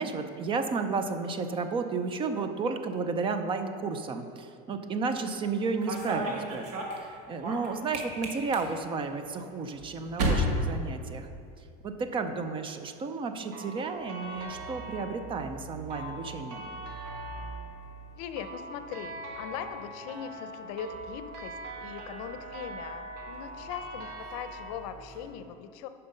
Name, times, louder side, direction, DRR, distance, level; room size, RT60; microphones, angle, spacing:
voice 1, 0.0-6.7 7.0-11.3 11.8-16.8, right 4 dB, 25° right, 8 dB, 0.5 m, -32 dB
sound 1, 5.5-11.7 12.0-12.5 13.6-25.3, right 1 dB, 90° right, 1.6 m, -38 dB
sound 2, 13.5-24.9, right 1 dB, 55° right, 1.6 m, -43 dB
voice 2, 18.2-25.9, left 8 dB, 70° left, 10 dB, 0.6 m, -40 dB
9.3 x 5.6 x 5.1 m, 2.4 s
supercardioid pair, 140°, 20 cm